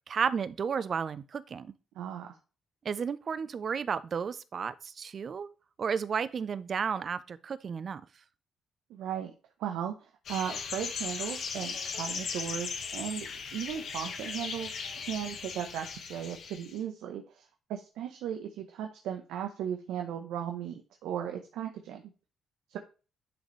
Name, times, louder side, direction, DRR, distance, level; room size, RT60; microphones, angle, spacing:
voice 1, 0.0-1.7 2.8-5.5 5.8-8.0, right 6 dB, 50° right, 0.5 m, -32 dB
voice 2, 1.9-2.4 8.9-9.3 9.6-13.3 13.5-22.0 22.7-22.8, right 9 dB, 90° right, 0.8 m, -37 dB
sound 1, 10.2-16.8, left 5 dB, 65° left, 1.5 m, -38 dB
10.0 x 3.9 x 3.2 m
cardioid pair, 90°, 0 cm